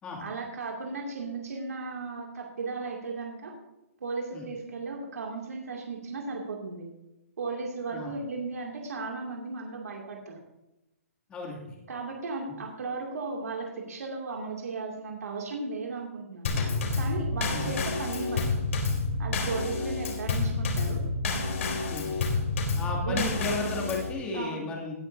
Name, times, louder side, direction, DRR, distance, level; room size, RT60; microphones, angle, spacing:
voice 1, 0.2-3.5 4.0-6.9 7.4-10.4 11.9-16.6 16.9-18.4 19.2-21.0 23.0-23.3 24.3-24.7, right 4 dB, 80° right, 0 dB, 2.4 m, -35 dB
voice 2, 11.3-11.8 17.5-17.7 19.8-19.9 21.9-22.1 22.8-24.9, left 3 dB, 10° left, -2 dB, 2.4 m, -34 dB
Drum kit / Snare drum / Bass drum, 16.4-24.1, left 3 dB, 55° left, 3.5 m, -29 dB
18.0 x 10.5 x 2.7 m, 0.95 s
hypercardioid pair, 165°, 8 cm